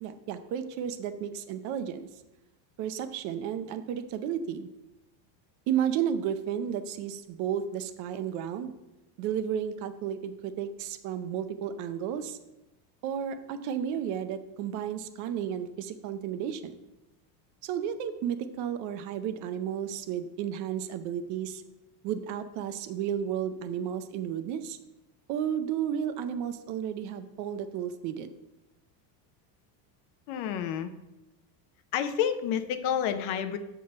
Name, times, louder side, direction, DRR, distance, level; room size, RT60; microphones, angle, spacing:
voice 1, 0.0-2.1 2.8-4.7 5.7-8.7 9.2-12.4 13.0-16.8 17.6-21.6 22.0-24.8 25.3-28.3, right 9 dB, 40° right, 10 dB, 0.5 m, -33 dB
voice 2, 30.3-30.9 31.9-33.6, left 9 dB, 60° left, 9 dB, 0.7 m, -29 dB
6.9 x 3.7 x 6.4 m, 0.97 s
cardioid pair, 160°, 49 cm